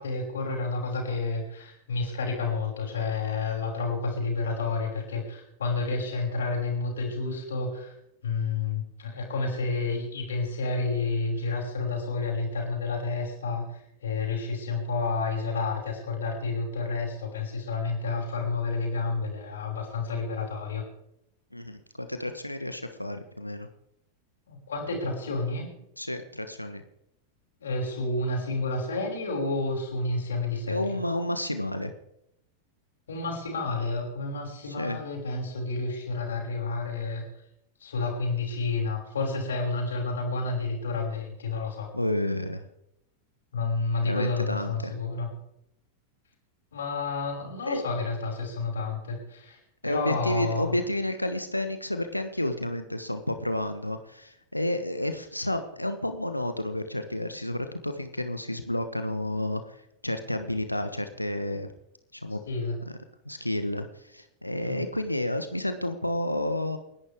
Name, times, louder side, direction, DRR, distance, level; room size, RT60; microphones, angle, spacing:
voice 1, 0.0-7.9 8.2-20.8 24.5-25.7 27.6-31.0 33.1-37.2 37.8-41.9 43.5-45.3 46.7-49.6 49.8-50.7 62.5-62.8 64.6-64.8, left 3 dB, 65° left, 0 dB, 5.8 m, -30 dB
voice 2, 21.5-23.7 26.0-26.8 30.7-31.9 34.6-35.0 41.9-42.7 44.0-44.9 47.6-47.8 49.8-61.7 62.1-62.4 63.2-66.8, left 1 dB, 85° left, 8 dB, 1.2 m, -31 dB
29.5 x 11.0 x 3.6 m, 0.81 s
figure-of-eight pair, 90°, 0 cm